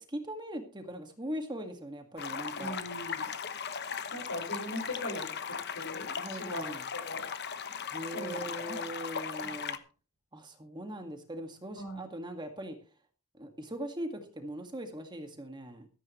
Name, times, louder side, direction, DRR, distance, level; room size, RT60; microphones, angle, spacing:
voice 1, 0.1-2.8 6.2-6.9 7.9-9.8 10.3-12.8 13.4-15.9, right 1 dB, 20° right, 5 dB, 1.9 m, -40 dB
sound 1, 2.2-9.8, left 6 dB, 50° left, 1.0 m, -38 dB
voice 2, 2.6-3.3 3.8-5.3 5.7-7.2 8.1-8.8 9.4-9.5 11.8-12.0, left 1 dB, 75° left, 3 dB, 5.3 m, -40 dB
16.0 x 14.0 x 3.1 m, 0.37 s
head